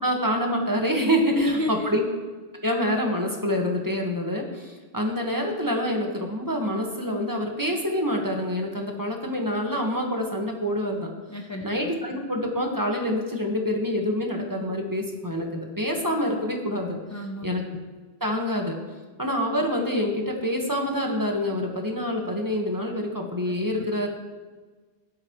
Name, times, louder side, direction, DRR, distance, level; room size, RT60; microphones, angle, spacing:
voice 1, 0.0-2.0 2.6-11.1 11.6-17.0 17.4-17.6 18.2-18.8 19.2-24.1, equal, 15° right, 1 dB, 1.6 m, -26 dB
voice 2, 1.3-1.9 11.3-11.7 17.1-17.5 23.8-23.9, left 1 dB, 20° left, 2 dB, 0.6 m, -30 dB
16.0 x 12.0 x 3.2 m, 1.4 s
omnidirectional pair, 1.2 m